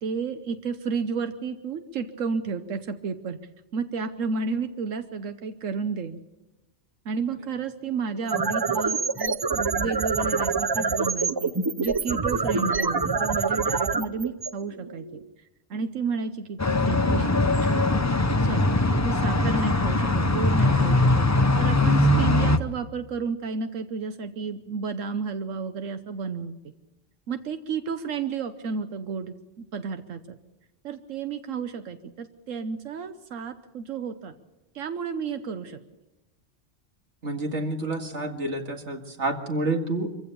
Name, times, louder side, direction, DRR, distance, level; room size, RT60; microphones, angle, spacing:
voice 1, 0.0-3.4 3.7-6.2 7.0-11.5 11.8-15.2 15.7-17.3 17.6-17.9 18.4-21.3 21.6-26.5 27.3-30.4 30.8-34.3 34.7-35.8, right 5 dB, 85° right, 9 dB, 1.3 m, -32 dB
sound 1, 8.1-15.2, right 4 dB, 30° right, 0.4 m, -26 dB
sound 2, 16.6-22.6, left 2 dB, 20° left, 0.6 m, -21 dB
voice 2, 37.2-40.1, right 2 dB, 65° right, 4 dB, 2.3 m, -29 dB
24.0 x 16.0 x 6.9 m, 1.1 s
omnidirectional pair, 1.3 m